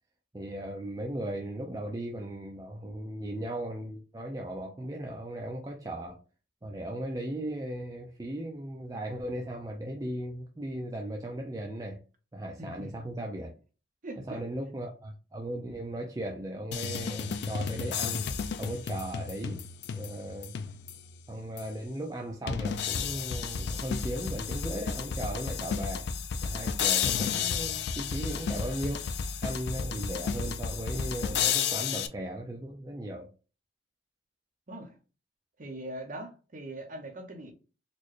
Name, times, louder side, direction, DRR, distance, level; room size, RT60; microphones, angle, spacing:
voice 1, 0.3-6.2 6.6-12.0 12.3-13.5 14.2-18.3 18.6-19.6 19.9-20.5 21.3-26.1 26.4-29.0 29.4-33.3, right 1 dB, 20° right, 0.4 m, -37 dB
voice 2, 12.6-12.9 14.0-14.4 34.7-35.0 35.6-37.5, right 1 dB, 45° right, 0.7 m, -41 dB
sound 1, 16.7-21.1 21.6-21.7 22.5-32.1, left 7 dB, 55° left, 0.3 m, -32 dB
4.2 x 2.2 x 3.1 m
head